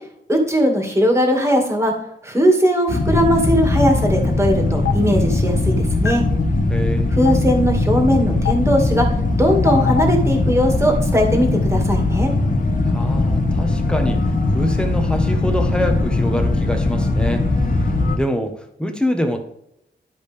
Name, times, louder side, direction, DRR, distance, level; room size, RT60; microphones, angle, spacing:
voice 1, 0.3-1.9 2.2-6.2 7.2-9.1 9.4-12.3, equal, 15° right, 1 dB, 2.0 m, -19 dB
sound 1, 2.9-18.2, left 2 dB, 45° left, 1.2 m, -19 dB
Stream, 4.9-5.0 6.1-6.2 7.3-7.4 8.5-8.6 9.7-10.0, left 13 dB, 85° left, 1.0 m, -20 dB
voice 2, 6.7-7.1 12.9-19.4, equal, 5° left, 5 dB, 1.2 m, -25 dB
12.0 x 5.1 x 3.4 m, 0.78 s
wide cardioid pair, 130°, 19 cm